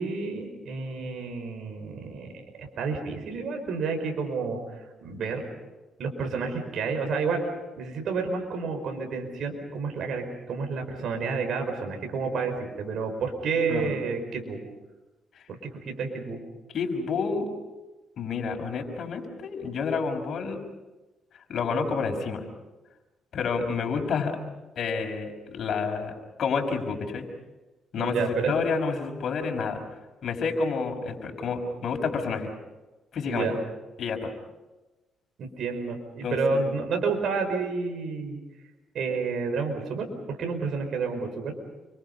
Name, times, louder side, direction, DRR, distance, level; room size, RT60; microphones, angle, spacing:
voice 1, 0.0-2.3 2.6-4.6 5.0-5.4 6.0-7.4 7.8-14.6 15.5-16.4 28.0-28.5 33.3-33.6 35.4-38.4 38.9-40.1 40.4-41.5, right 4 dB, 70° right, 4 dB, 5.1 m, -30 dB
voice 2, 16.7-17.5 18.2-20.6 21.5-22.4 23.3-24.4 24.8-27.3 27.9-29.8 30.2-32.5 33.1-33.5 34.0-34.3 36.2-36.8, left 5 dB, 60° left, 3 dB, 5.5 m, -29 dB
29.5 x 25.0 x 5.5 m, 1.1 s
cardioid pair, 90°, 0 cm